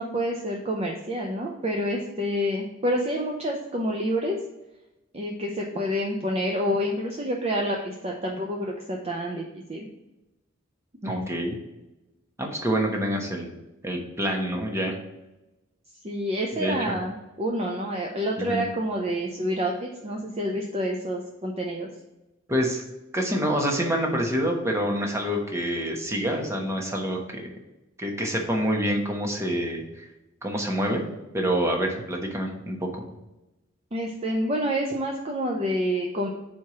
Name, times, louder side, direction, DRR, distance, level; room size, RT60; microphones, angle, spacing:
voice 1, 0.0-4.4 5.1-9.9 11.0-11.2 16.0-21.9 33.9-36.3, equal, 30° right, 0 dB, 0.6 m, -28 dB
voice 2, 11.0-11.6 12.4-13.5 13.8-15.0 16.5-16.9 18.4-18.6 22.5-22.8 23.1-27.4 28.0-30.1 30.4-31.0 31.3-33.0, equal, 15° right, 1 dB, 1.1 m, -27 dB
4.7 x 4.4 x 5.9 m, 0.97 s
head